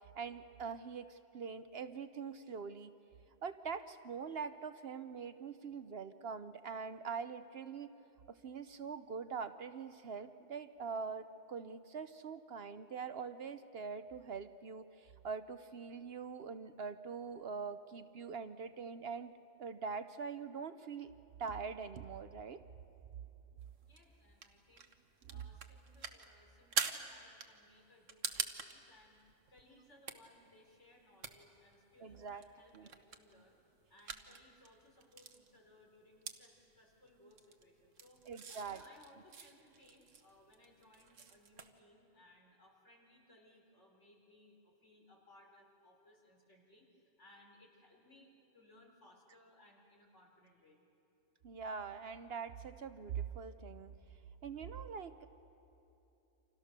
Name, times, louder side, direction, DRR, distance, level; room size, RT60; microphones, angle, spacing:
voice 1, 0.1-2.9 3.4-7.9 8.3-19.3 19.6-21.1 21.4-22.6 25.3-25.4 32.0-32.4 32.7-32.9 38.3-38.8 51.4-53.9 54.4-55.3, right 5 dB, 60° right, 11 dB, 0.9 m, -43 dB
sound 1, 23.6-41.8, right 6 dB, 85° right, 1.6 m, -46 dB
voice 2, 23.8-24.9 25.3-29.2 29.5-33.6 33.9-38.2 38.5-50.8, left 1 dB, 65° left, 0 dB, 4.6 m, -64 dB
29.0 x 27.0 x 6.7 m, 2.9 s
omnidirectional pair, 1.3 m